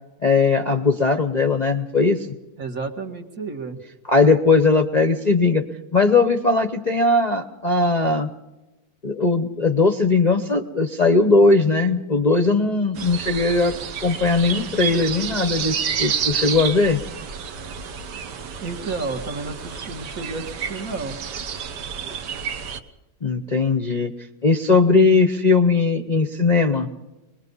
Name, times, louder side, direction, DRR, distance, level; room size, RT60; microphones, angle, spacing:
voice 1, 0.2-2.3 4.1-5.6 5.9-8.3 9.0-13.7 14.0-17.0 23.2-24.1 24.4-26.9, left 3 dB, 35° left, 7 dB, 0.7 m, -19 dB
voice 2, 2.6-3.8 18.6-21.2, right 3 dB, 50° right, 4 dB, 2.1 m, -31 dB
sound 1, 13.0-22.8, right 7 dB, 75° right, 1.7 m, -30 dB
22.5 x 21.0 x 5.5 m, 1.1 s
omnidirectional pair, 1.9 m